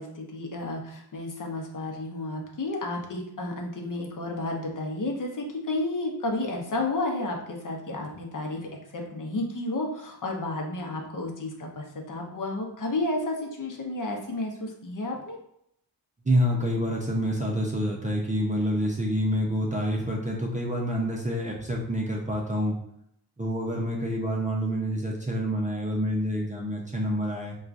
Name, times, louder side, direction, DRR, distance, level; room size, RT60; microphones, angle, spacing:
voice 1, 0.0-15.4, left 2 dB, 50° left, 1 dB, 0.8 m, -32 dB
voice 2, 16.2-22.8 23.4-27.6, equal, 20° right, -2 dB, 0.6 m, -27 dB
4.4 x 2.3 x 2.5 m, 0.73 s
cardioid pair, 80°, 40 cm